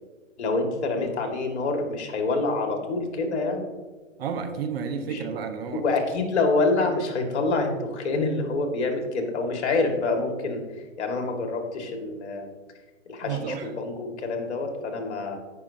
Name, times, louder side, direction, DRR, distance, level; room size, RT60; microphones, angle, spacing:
voice 1, 0.4-3.7 5.0-5.3 5.7-10.6 11.0-12.5 13.1-15.4, left 3 dB, 60° left, 4 dB, 2.1 m, -26 dB
voice 2, 4.2-5.8 13.2-13.7, right 6 dB, 50° right, 7 dB, 1.1 m, -31 dB
16.5 x 6.0 x 2.8 m, 1.3 s
hypercardioid pair, 135°, 39 cm